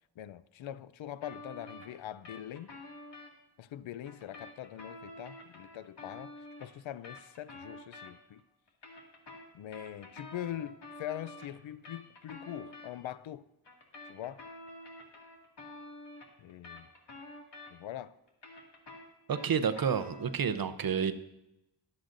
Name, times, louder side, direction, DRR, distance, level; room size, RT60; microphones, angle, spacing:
voice 1, 0.2-2.7 3.6-8.4 9.5-13.5 14.0-14.5 16.4-16.9 17.7-18.1, left 11 dB, 90° left, 0.6 m, -42 dB
sound 1, 1.2-3.3 4.0-8.4 8.7-12.9 13.6-18.0 18.3-20.4, left 2 dB, 65° left, 2.2 m, -49 dB
voice 2, 19.3-21.1, right 7 dB, 50° right, 0.7 m, -30 dB
22.5 x 7.7 x 2.6 m
wide cardioid pair, 140°, 45 cm